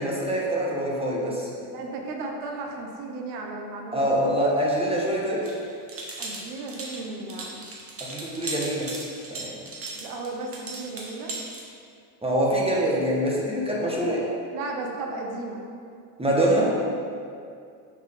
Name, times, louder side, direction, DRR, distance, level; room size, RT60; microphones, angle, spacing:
voice 1, 0.0-1.5 3.9-5.5 8.0-8.9 9.3-9.6 12.2-14.3 16.2-16.8, right 1 dB, 10° right, -4 dB, 1.2 m, -24 dB
voice 2, 1.7-4.3 6.2-7.6 9.9-11.3 14.5-15.6, right 3 dB, 80° right, 1 dB, 1.1 m, -35 dB
sound 1, 5.4-11.6, right 2 dB, 30° right, 1.3 m, -37 dB
5.8 x 5.5 x 3.7 m, 2.4 s
supercardioid pair, 95°, 48 cm